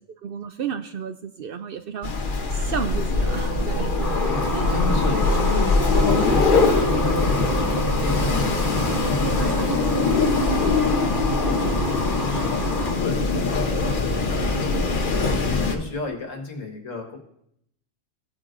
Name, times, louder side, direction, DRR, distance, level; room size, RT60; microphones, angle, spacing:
voice 1, 0.2-2.1 2.5-3.9 4.5-4.7, right 7 dB, 60° right, 9 dB, 0.6 m, -32 dB
Wind, 2.0-15.8, left 3 dB, 45° left, 1.1 m, -22 dB
sound 1, 3.2-10.2, right 1 dB, 25° right, 2.2 m, -32 dB
sound 2, 4.0-13.0, left 1 dB, ahead, 2.1 m, -33 dB
voice 2, 4.3-10.2 11.4-11.8 12.2-12.7 13.0-17.2, left 4 dB, 85° left, 3 dB, 1.9 m, -32 dB
16.0 x 8.8 x 2.6 m, 0.74 s
omnidirectional pair, 1.3 m